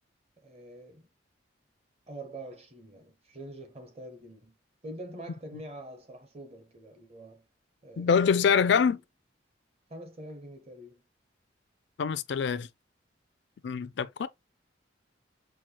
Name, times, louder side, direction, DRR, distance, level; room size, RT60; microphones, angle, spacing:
voice 1, 0.4-1.1 2.1-4.6 4.8-7.5 7.8-9.0 9.9-11.1, right 1 dB, 35° right, 0.9 m, -45 dB
voice 2, 8.0-9.0 12.0-12.7 13.6-14.3, left 6 dB, 65° left, 0.3 m, -24 dB
6.1 x 2.3 x 2.8 m
head